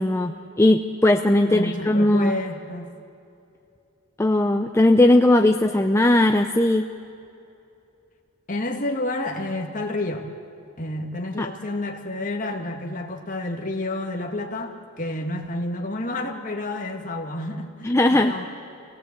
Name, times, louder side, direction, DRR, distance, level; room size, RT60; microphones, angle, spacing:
voice 1, 0.0-2.3 4.2-6.9 11.4-11.5 17.8-18.3, left 1 dB, 10° left, 5 dB, 0.5 m, -18 dB
voice 2, 1.5-2.9 8.5-10.3 10.8-18.4, left 2 dB, 35° left, 2 dB, 2.0 m, -30 dB
25.5 x 18.0 x 8.5 m, 2.6 s
head